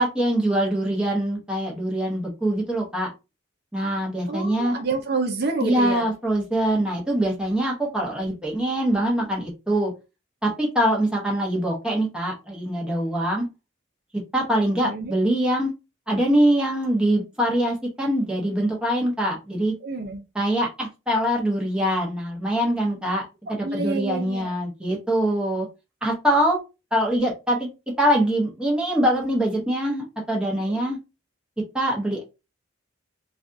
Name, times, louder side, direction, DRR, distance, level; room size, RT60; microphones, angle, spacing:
voice 1, 0.0-3.1 3.7-4.8 5.6-9.9 10.4-13.5 14.3-15.7 16.1-19.7 20.3-25.7 26.0-26.6 26.9-27.7 28.0-31.0 31.7-32.2, right 1 dB, 5° right, -2 dB, 0.9 m, -23 dB
voice 2, 4.3-6.1 14.8-15.1 19.8-20.2 23.5-24.5 30.7-30.8, right 3 dB, 50° right, 3 dB, 0.6 m, -28 dB
3.3 x 2.4 x 2.6 m, 0.27 s
head